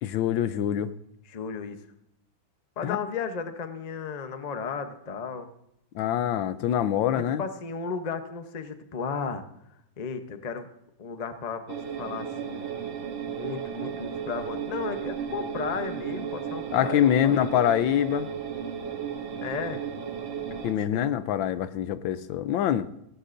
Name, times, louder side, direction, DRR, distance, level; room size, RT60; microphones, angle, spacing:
voice 1, 0.0-0.9 2.8-3.0 5.9-7.4 16.7-18.3 20.6-22.9, left 10 dB, 90° left, 14 dB, 1.4 m, -25 dB
voice 2, 1.3-1.8 2.8-5.5 7.1-9.4 10.0-10.7 11.0-13.0 13.3-17.5 19.4-19.8 20.9-21.1, left 5 dB, 40° left, 8 dB, 0.5 m, -34 dB
sound 1, 11.7-20.7, right 7 dB, 85° right, 1.9 m, -34 dB
16.5 x 16.5 x 2.6 m, 0.80 s
omnidirectional pair, 2.1 m